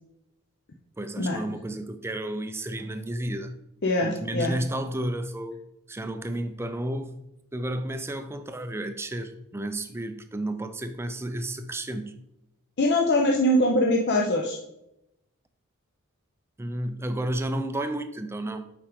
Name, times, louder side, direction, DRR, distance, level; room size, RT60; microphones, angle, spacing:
voice 1, 1.0-3.6 4.0-5.6 5.9-7.1 7.5-12.2 16.6-18.7, right 1 dB, 10° right, 0.4 m, -32 dB
voice 2, 3.8-4.5 12.8-14.6, left 1 dB, 50° left, 0.6 m, -23 dB
7.2 x 4.9 x 3.5 m
head